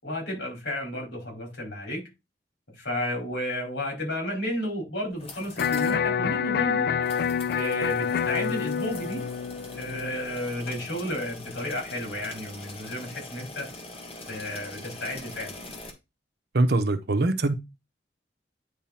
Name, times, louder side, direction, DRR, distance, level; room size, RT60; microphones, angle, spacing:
voice 1, 0.0-2.0 2.8-6.9 7.5-9.2 9.7-13.7 14.3-15.7, left 1 dB, 80° left, 5.0 m, -32 dB
sound 1, 5.1-6.0 6.3-6.4 7.0-15.9, left 2 dB, 35° left, 1.5 m, -43 dB
Electric guitar, 5.6-11.6, left 7 dB, 55° left, 0.3 m, -28 dB
voice 2, 16.5-17.5, right 2 dB, 60° right, 0.9 m, -23 dB
9.4 x 3.6 x 4.3 m
head